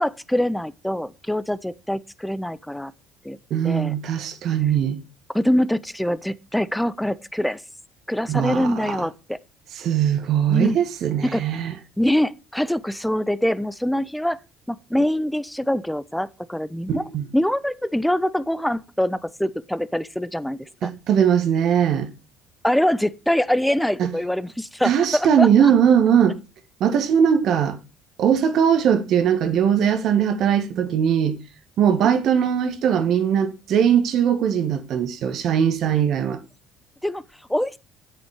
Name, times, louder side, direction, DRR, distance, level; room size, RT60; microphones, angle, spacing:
voice 1, 0.0-2.9 3.2-3.4 3.6-4.0 5.3-7.6 8.1-9.4 10.5-10.8 11.2-11.4 12.0-14.4 14.7-20.9 22.6-25.7 37.0-37.2 37.5-37.7, left 1 dB, 5° left, 0.8 m, -24 dB
voice 2, 3.5-5.0 8.3-9.0 9.8-11.7 16.9-17.2 20.8-22.1 24.0-24.1 24.8-26.4 26.8-27.8 28.2-31.4 31.8-36.4, right 8 dB, 55° right, 1.8 m, -20 dB
9.4 x 8.2 x 5.1 m
hypercardioid pair, 60°, 0 cm